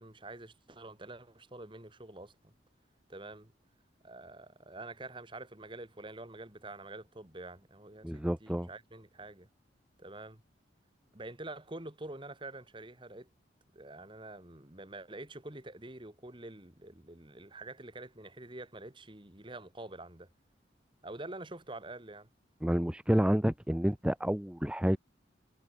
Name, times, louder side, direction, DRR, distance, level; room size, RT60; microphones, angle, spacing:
voice 1, 0.0-2.5 3.1-3.5 4.0-9.5 10.0-10.4 11.1-13.3 13.8-20.3 21.0-22.3, right 2 dB, 25° right, 2.0 m, -46 dB
voice 2, 8.0-8.7 22.6-25.0, equal, 5° right, 0.5 m, -29 dB
head